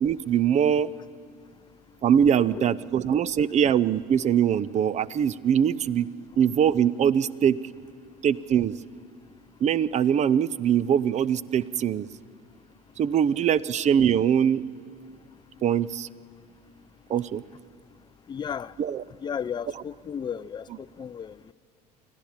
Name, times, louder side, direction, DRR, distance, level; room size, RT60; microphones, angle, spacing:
voice 1, 0.0-0.9 2.0-6.1 6.4-7.6 8.2-8.8 9.6-12.1 13.0-14.6 15.6-16.1 17.1-17.4 18.8-19.0, right 8 dB, 35° right, 20 dB, 0.5 m, -22 dB
voice 2, 18.3-18.7 19.2-20.6 21.0-21.3, left 7 dB, 20° left, 18 dB, 0.4 m, -33 dB
25.0 x 15.5 x 7.3 m, 2.3 s
figure-of-eight pair, 65°, 20 cm